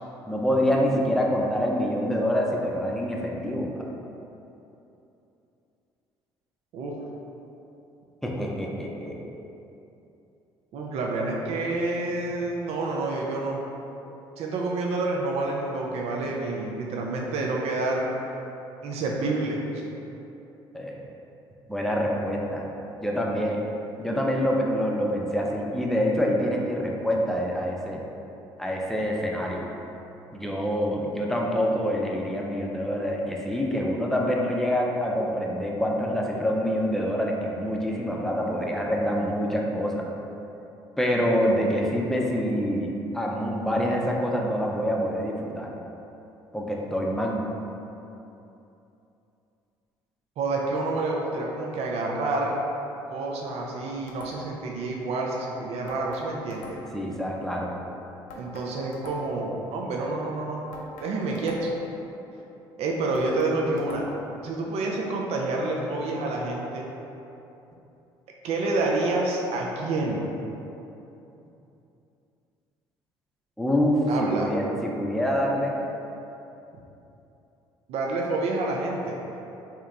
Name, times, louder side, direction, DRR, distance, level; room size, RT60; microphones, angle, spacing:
voice 1, 0.3-3.7 8.2-9.2 20.7-21.0 21.7-22.6 23.0-23.6 24.0-28.0 28.6-29.6 30.3-40.1 41.0-45.7 46.5-47.4 56.9-57.7 73.6-75.7, equal, 5° left, -2 dB, 0.6 m, -26 dB
voice 2, 10.7-13.6 14.4-18.1 18.8-19.9 50.4-52.7 53.1-56.8 58.3-60.6 61.0-61.7 62.8-64.1 64.4-66.9 68.4-70.3 74.1-74.5 77.9-79.2, right 2 dB, 55° right, -1 dB, 0.5 m, -28 dB
sound 1, 54.1-54.7 55.9-57.1 58.3-59.5 60.7-61.9 63.1-64.4, left 2 dB, 70° left, 0.5 m, -44 dB
3.6 x 2.9 x 3.3 m, 2.9 s
hypercardioid pair, 50°, 12 cm